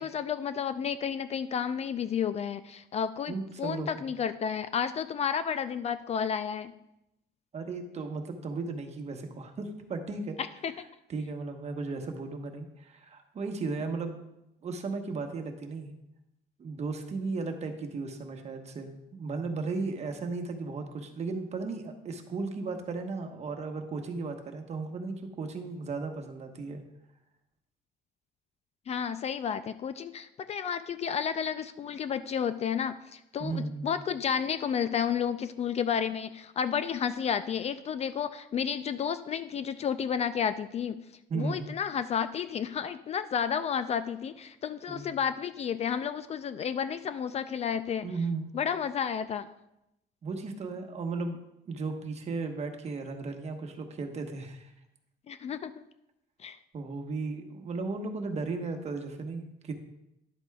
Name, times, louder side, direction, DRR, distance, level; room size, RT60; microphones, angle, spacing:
voice 1, 0.0-6.7 10.4-10.7 28.9-41.0 41.3-48.1 48.5-49.5 55.3-55.8 56.4-56.6, left 7 dB, 40° left, 12 dB, 0.4 m, -31 dB
voice 2, 3.3-3.9 7.5-10.4 11.1-14.2 14.6-15.9 16.6-26.8 33.4-33.9 41.3-41.6 44.9-45.1 48.0-48.6 50.2-51.4 51.7-54.7 56.7-59.7, right 3 dB, 40° right, 4 dB, 1.1 m, -35 dB
11.0 x 7.9 x 2.3 m, 0.86 s
cardioid pair, 110°, 17 cm